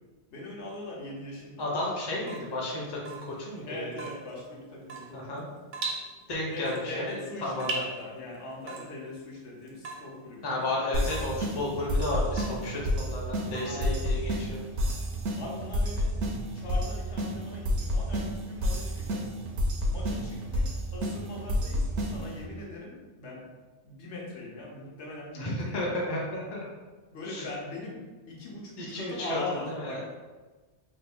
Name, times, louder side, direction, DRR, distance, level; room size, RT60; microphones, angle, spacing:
voice 1, 0.3-1.7 3.7-5.4 6.5-10.7 13.6-14.1 15.4-16.1 16.5-19.3 19.9-20.7 20.9-23.4 23.8-26.1 27.1-28.0 28.3-30.0, left 2 dB, 75° left, -3 dB, 1.1 m, -40 dB
voice 2, 1.6-3.8 5.1-5.5 6.3-7.8 10.4-14.6 25.3-26.6 27.2-27.4 28.8-29.4 29.7-30.0, left 1 dB, 25° left, -3 dB, 0.6 m, -33 dB
Water tap faucet / Drip, 2.1-14.3, right 3 dB, 55° right, 0.6 m, -42 dB
sound 1, 10.9-22.4, equal, 80° right, 0.9 m, -30 dB
3.2 x 2.4 x 3.5 m, 1.3 s
omnidirectional pair, 1.2 m